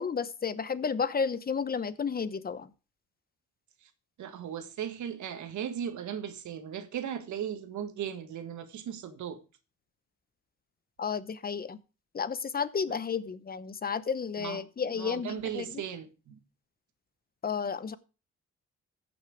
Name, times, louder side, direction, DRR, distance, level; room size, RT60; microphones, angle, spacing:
voice 1, 0.0-2.7 11.0-11.8 12.1-15.7 17.4-18.0, left 6 dB, 30° left, 0.9 m, -32 dB
voice 2, 4.2-9.4 12.9-13.0 14.4-16.4, right 9 dB, 75° right, 1.5 m, -37 dB
14.5 x 6.2 x 5.0 m
cardioid pair, 90°, 30 cm